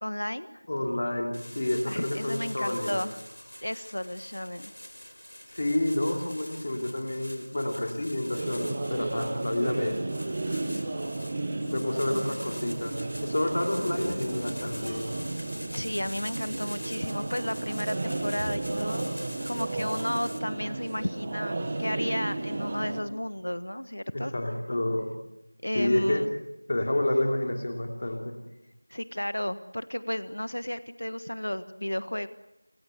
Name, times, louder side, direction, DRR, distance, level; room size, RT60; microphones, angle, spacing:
voice 1, 0.0-0.6 1.9-3.2 3.6-4.7 15.7-19.1 19.4-24.3 25.6-26.3 28.9-32.3, left 1 dB, 60° left, 12 dB, 1.5 m, -33 dB
voice 2, 0.7-3.0 5.5-10.0 11.7-15.1 24.1-25.1 25.7-26.4 26.7-28.4, left 1 dB, 20° left, 3 dB, 3.0 m, -29 dB
sound 1, 1.3-20.4, equal, 80° left, 5.1 m, -45 dB
sound 2, 8.3-23.0, right 2 dB, 10° right, 1.1 m, -33 dB
28.5 x 21.5 x 8.2 m, 0.94 s
figure-of-eight pair, 180°, 0 cm